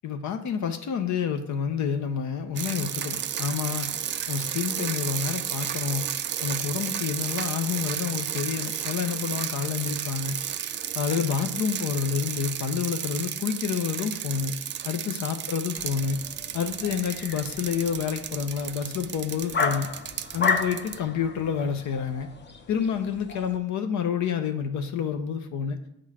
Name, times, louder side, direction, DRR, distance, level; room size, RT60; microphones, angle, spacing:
voice 1, 0.0-3.9 4.3-6.0 6.4-10.4 10.9-14.5 14.8-16.2 16.5-19.9 20.3-22.3 22.7-25.8, left 7 dB, 70° left, 6 dB, 0.7 m, -28 dB
sound 1, 2.6-21.0, right 9 dB, 40° right, 0.4 m, -33 dB
sound 2, 15.8-23.6, left 4 dB, 35° left, 0.8 m, -33 dB
7.8 x 3.8 x 4.8 m, 0.78 s
cardioid pair, 90°, 30 cm